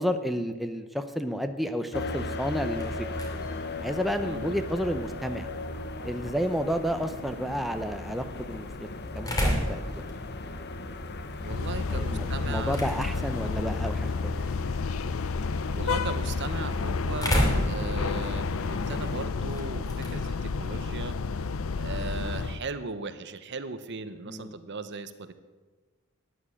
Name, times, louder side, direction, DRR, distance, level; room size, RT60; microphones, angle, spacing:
voice 1, 0.0-3.1 3.8-5.5 6.0-8.9 9.1-10.0 11.9-14.3 24.3-24.5, equal, ahead, 7 dB, 0.7 m, -31 dB
sound 1, 1.9-19.3, left 2 dB, 50° left, 1.0 m, -38 dB
sound 2, 2.4-22.2, equal, 20° left, 2.8 m, -36 dB
voice 2, 4.2-4.5 11.4-12.8 13.2-13.4 15.7-21.2 21.8-25.3, right 4 dB, 55° right, 12 dB, 1.0 m, -38 dB
sound 3, 11.4-22.6, left 4 dB, 70° left, 0.5 m, -31 dB
13.0 x 9.9 x 8.5 m, 1.3 s
head